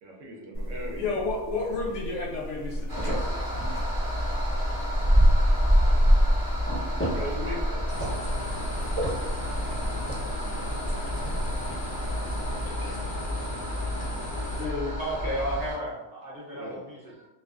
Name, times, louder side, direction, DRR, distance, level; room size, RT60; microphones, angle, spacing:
voice 1, 0.0-1.2 7.1-7.9 16.5-16.8, equal, 70° right, -2 dB, 0.9 m, -38 dB
sound 1, 0.5-12.7, equal, 15° left, 0.5 m, -27 dB
voice 2, 1.0-3.4 12.6-13.0 13.9-14.0 14.5-14.9, left 3 dB, 70° left, -3 dB, 0.8 m, -32 dB
sound 2, 2.9-15.8, equal, 15° right, 0.9 m, -32 dB
sound 3, 7.9-14.7, left 1 dB, 85° left, 1.0 m, -38 dB
voice 3, 15.0-17.3, right 1 dB, 45° right, -7 dB, 0.8 m, -33 dB
2.5 x 2.3 x 2.3 m, 1.0 s
omnidirectional pair, 1.4 m